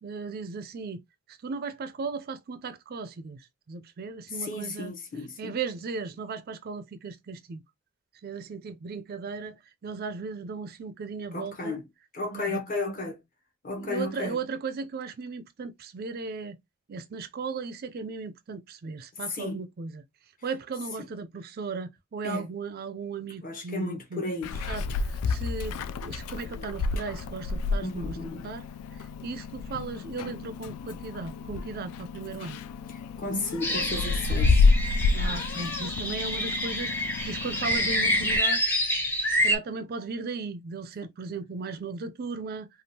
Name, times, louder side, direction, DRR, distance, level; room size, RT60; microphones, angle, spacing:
voice 1, 0.0-1.0 1.3-4.9 5.4-7.6 8.2-11.8 12.3-12.6 13.8-16.6 16.9-20.0 20.4-24.2 24.7-28.2 28.4-28.7 29.0-32.6 35.1-38.6 39.3-42.7, right 4 dB, 45° right, 0.4 m, -36 dB
voice 2, 4.3-5.6 11.3-11.8 12.1-13.2 13.6-14.4 19.3-19.6 21.0-21.1 22.2-22.5 23.4-24.6 27.8-28.5 32.9-34.7, left 2 dB, 40° left, 0.8 m, -33 dB
Meow, 24.4-38.4, left 4 dB, 80° left, 0.3 m, -29 dB
sound 1, 33.6-39.6, equal, 10° left, 0.6 m, -28 dB
3.4 x 2.3 x 2.7 m
head